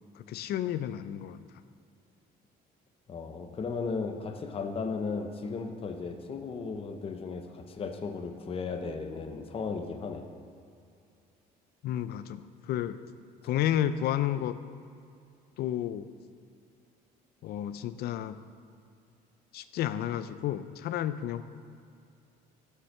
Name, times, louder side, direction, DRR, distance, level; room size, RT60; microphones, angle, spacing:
voice 1, 0.1-1.4 11.8-13.0 13.4-14.6 15.6-16.1 17.4-18.4 19.5-21.4, left 11 dB, 70° left, 13 dB, 0.5 m, -31 dB
voice 2, 3.1-10.3, left 4 dB, 35° left, 6 dB, 0.7 m, -35 dB
7.2 x 6.7 x 6.5 m, 2.4 s
cardioid pair, 110°, 17 cm